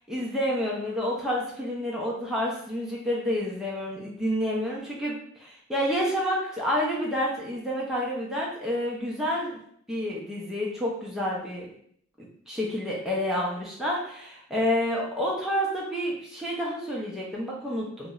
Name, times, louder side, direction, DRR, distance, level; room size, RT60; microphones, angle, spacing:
voice 1, 0.1-9.6 9.9-11.7 12.2-18.1, equal, ahead, -5 dB, 0.4 m, -29 dB
2.8 x 2.0 x 2.3 m, 0.66 s
head